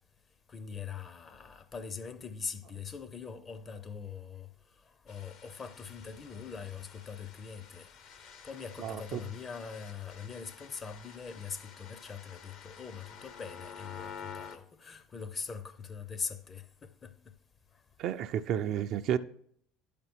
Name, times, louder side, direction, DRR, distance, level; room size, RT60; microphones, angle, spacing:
voice 1, 0.5-4.5 5.0-7.9 8.4-17.1, left 6 dB, 30° left, 0.7 m, -42 dB
sound 1, 5.1-14.6, left 6 dB, 60° left, 0.9 m, -50 dB
voice 2, 8.8-9.2 18.0-19.2, right 9 dB, 55° right, 0.5 m, -31 dB
11.0 x 5.2 x 4.5 m
hypercardioid pair, 70°, 0 cm